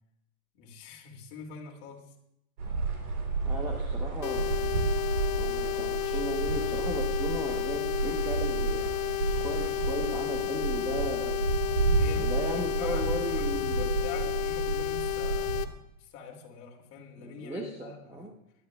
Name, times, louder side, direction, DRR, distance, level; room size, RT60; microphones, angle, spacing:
voice 1, 0.5-2.1 11.9-18.3, left 5 dB, 40° left, 0 dB, 2.6 m, -44 dB
sound 1, 2.6-15.6, right 4 dB, 75° right, 3.8 m, -31 dB
voice 2, 3.4-4.8 5.4-8.9 9.3-11.3 12.1-14.3 17.2-18.3, right 1 dB, 5° right, 1 dB, 1.0 m, -36 dB
sound 2, 4.2-15.6, left 19 dB, 60° left, 1.0 m, -32 dB
20.5 x 11.5 x 2.4 m, 0.80 s
hypercardioid pair, 145°, 45 cm